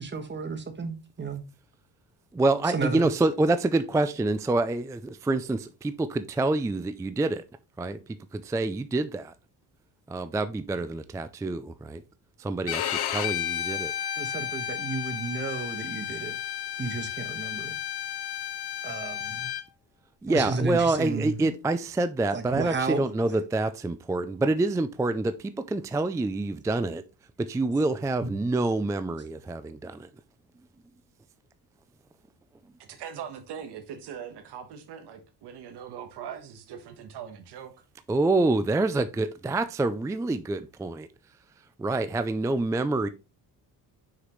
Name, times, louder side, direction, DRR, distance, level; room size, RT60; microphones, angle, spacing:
voice 1, 0.0-1.4 2.7-3.1 14.2-16.4 16.8-17.8 18.8-19.5 20.3-21.5 22.3-23.0 28.2-28.3, right 4 dB, 25° right, 1.4 m, -32 dB
voice 2, 2.3-7.4 7.8-9.3 10.1-12.0 12.4-13.9 20.2-27.0 27.4-30.1 38.1-41.1 41.6-43.1, right 2 dB, 10° right, 0.3 m, -27 dB
Bowed string instrument, 12.7-19.6, left 10 dB, 70° left, 1.0 m, -32 dB
voice 3, 32.8-37.7, right 8 dB, 80° right, 1.4 m, -41 dB
6.2 x 5.8 x 3.1 m
cardioid pair, 115°, 40 cm